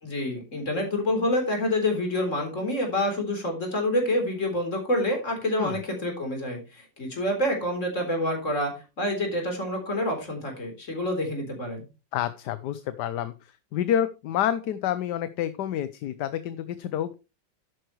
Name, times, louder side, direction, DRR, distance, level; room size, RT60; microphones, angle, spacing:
voice 1, 0.0-8.7 9.0-11.8, left 1 dB, 40° left, 2 dB, 4.1 m, -27 dB
voice 2, 12.1-13.3 13.7-17.2, left 10 dB, 70° left, 13 dB, 1.2 m, -28 dB
11.0 x 9.2 x 3.1 m, 0.28 s
omnidirectional pair, 2.0 m